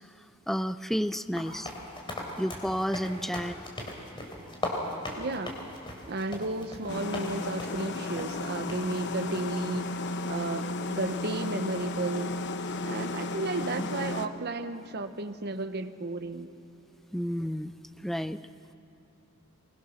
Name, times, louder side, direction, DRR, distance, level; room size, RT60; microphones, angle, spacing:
voice 1, 0.5-1.7 2.4-3.6 13.7-13.9 17.1-18.5, equal, ahead, 12 dB, 0.4 m, -31 dB
sound 1, 1.4-7.3 7.6-7.9 8.2-8.3 8.7-8.8 9.3-9.6, left 1 dB, 25° left, 3.3 m, -38 dB
voice 2, 5.2-5.6 6.1-9.9 10.3-12.4 12.8-16.5, right 2 dB, 50° right, 9 dB, 0.9 m, -33 dB
sound 2, 6.9-14.3, left 2 dB, 55° left, 0.9 m, -34 dB
23.5 x 21.5 x 6.5 m, 2.7 s
head